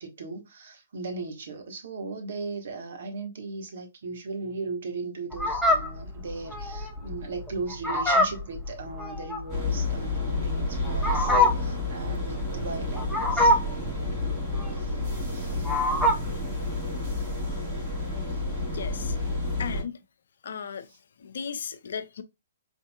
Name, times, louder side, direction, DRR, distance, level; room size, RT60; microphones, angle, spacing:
voice 1, 0.0-13.6 14.7-15.7 16.0-16.1 20.9-21.0, right 3 dB, 60° right, 1.3 m, -37 dB
Fowl, 5.3-16.4, left 1 dB, ahead, 0.9 m, -25 dB
sound 1, 9.5-19.8, left 2 dB, 30° right, 2.8 m, -30 dB
voice 2, 18.7-19.2 19.6-20.0 20.4-20.9 21.2-22.2, left 6 dB, 60° left, 0.5 m, -35 dB
4.4 x 3.6 x 2.2 m
figure-of-eight pair, 125°, 0 cm